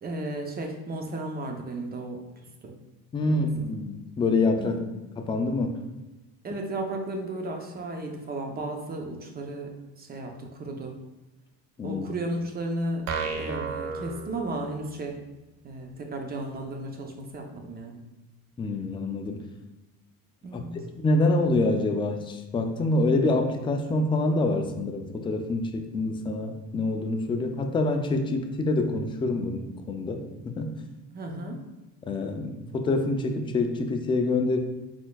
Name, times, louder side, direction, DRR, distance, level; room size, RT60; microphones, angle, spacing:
voice 1, 0.0-2.2 2.6-2.7 3.2-3.5 4.6-4.8 6.4-9.7 10.0-10.9 11.8-13.0 13.3-15.1 15.6-18.0 20.4-20.7 31.1-31.6, right 2 dB, 25° right, 3 dB, 0.7 m, -34 dB
voice 2, 3.1-4.8 5.3-5.7 11.8-12.1 18.6-19.4 20.5-20.6 21.0-30.7 32.0-34.6, left 2 dB, 15° left, 4 dB, 0.3 m, -26 dB
sound 1, 13.1-15.0, right 4 dB, 75° right, 0.6 m, -33 dB
4.5 x 4.3 x 2.3 m, 1.0 s
cardioid pair, 125°, 35 cm